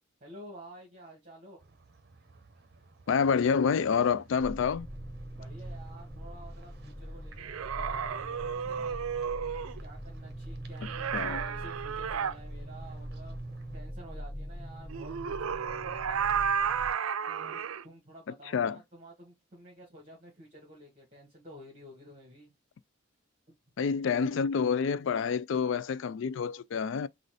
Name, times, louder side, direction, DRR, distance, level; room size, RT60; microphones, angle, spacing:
voice 1, 0.2-1.7 5.3-9.0 9.8-15.1 15.5-16.4 17.3-22.5 23.5-23.6, right 1 dB, 35° right, 1.5 m, -51 dB
sound 1, 1.6-13.8, right 3 dB, 50° right, 0.9 m, -56 dB
voice 2, 3.1-4.9 11.1-11.4 18.5-18.8 23.8-27.1, left 6 dB, 65° left, 0.3 m, -28 dB
sound 2, 4.4-16.9, equal, ahead, 0.9 m, -42 dB
sound 3, 7.4-9.8 10.8-12.3 14.9-17.8, right 7 dB, 90° right, 0.4 m, -32 dB
4.0 x 2.4 x 4.7 m
head